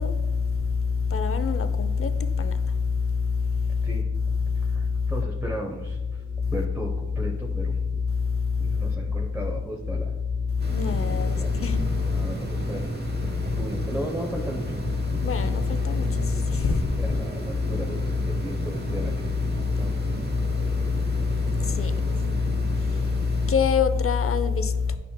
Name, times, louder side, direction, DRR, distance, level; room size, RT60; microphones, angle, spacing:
voice 1, 0.0-3.9 4.4-5.1 6.3-6.5 8.1-8.9 10.5-12.3 13.3-13.6 15.1-17.0 19.6-19.9 20.3-25.0, left 5 dB, 50° left, 10 dB, 0.6 m, -25 dB
voice 2, 4.5-6.0 6.5-8.0 8.6-10.1 11.0-13.1 13.4-14.9 16.6-19.4 19.8-20.0, equal, 10° right, -1 dB, 0.8 m, -36 dB
sound 1, 10.6-23.6, right 1 dB, 35° right, 1.0 m, -32 dB
9.2 x 5.6 x 2.2 m, 1.2 s
cardioid pair, 50°, 29 cm